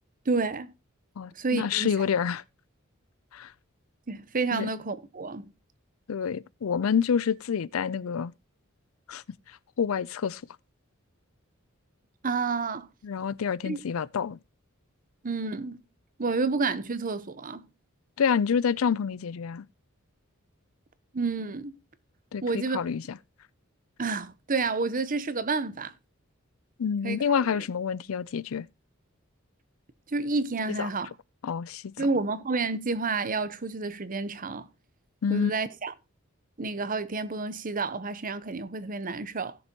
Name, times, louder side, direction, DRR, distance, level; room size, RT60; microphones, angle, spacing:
voice 1, 0.3-0.7 1.4-1.9 4.1-5.5 12.2-12.9 13.7-13.8 15.2-15.8 16.2-17.7 21.1-21.8 22.4-22.8 24.0-25.9 27.0-27.6 30.1-31.1 32.0-34.7 35.3-35.9 36.6-39.6, right 3 dB, 40° right, 0.9 m, -30 dB
voice 2, 1.2-2.4 3.3-3.5 4.5-4.7 6.1-8.3 9.1-9.2 9.8-10.4 13.0-14.4 18.2-19.6 22.3-23.0 26.8-28.7 30.8-30.9 31.4-32.1 35.2-35.5, left 7 dB, 80° left, 0.5 m, -28 dB
16.5 x 7.1 x 2.9 m
head